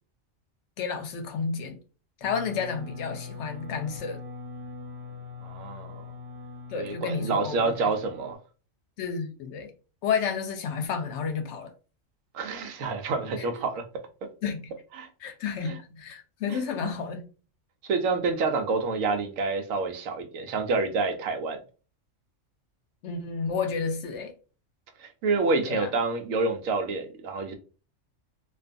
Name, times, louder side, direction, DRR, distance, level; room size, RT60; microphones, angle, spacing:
voice 1, 0.8-1.8 2.2-4.2 6.7-7.9 9.0-9.7 10.0-11.7 13.4-13.6 14.4-14.7 15.2-17.2 23.0-24.3 25.7-25.9, left 6 dB, 70° left, 0.8 m, -31 dB
sound 1, 2.2-8.4, left 4 dB, 55° right, 0.9 m, -42 dB
voice 2, 5.4-6.0 6.8-8.4 12.3-13.8 14.9-15.1 15.6-15.8 16.5-16.6 17.9-21.6 25.0-27.5, right 3 dB, 85° right, 1.0 m, -28 dB
2.5 x 2.4 x 2.4 m
omnidirectional pair, 1.4 m